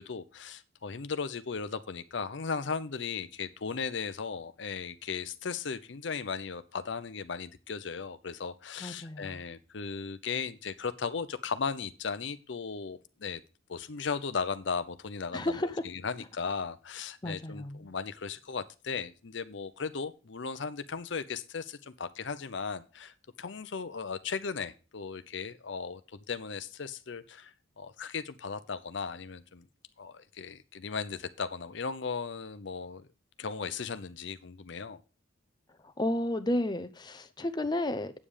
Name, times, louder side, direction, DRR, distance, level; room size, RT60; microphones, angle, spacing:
voice 1, 0.0-13.4 13.7-26.0 26.3-29.6 30.0-33.1 33.4-35.0, left 5 dB, 65° left, 0.7 m, -36 dB
voice 2, 8.8-9.4 15.3-15.8 17.2-17.9 36.0-38.1, left 1 dB, 20° left, 0.6 m, -32 dB
8.5 x 7.5 x 4.9 m
head